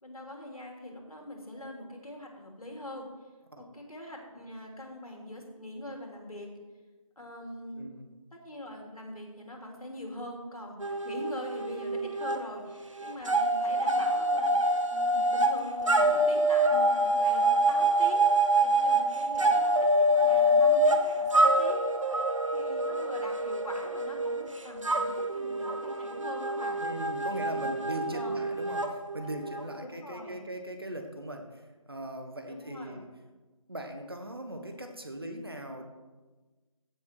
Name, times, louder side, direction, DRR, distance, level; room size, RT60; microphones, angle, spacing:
voice 1, 0.0-3.1 3.6-6.5 7.2-7.8 8.3-14.6 14.9-18.3 18.6-21.8 22.5-26.8 27.3-27.8 28.1-28.5 29.8-30.4 32.5-33.0, left 1 dB, 85° left, 1 dB, 3.2 m, -43 dB
voice 2, 7.7-8.1 26.8-33.1 33.7-35.9, right 1 dB, 45° right, 5 dB, 1.3 m, -39 dB
sound 1, 10.8-12.4 12.7-29.8, right 1 dB, 60° right, 1.1 m, -26 dB
15.5 x 7.1 x 4.6 m, 1.2 s
figure-of-eight pair, 175°, 18 cm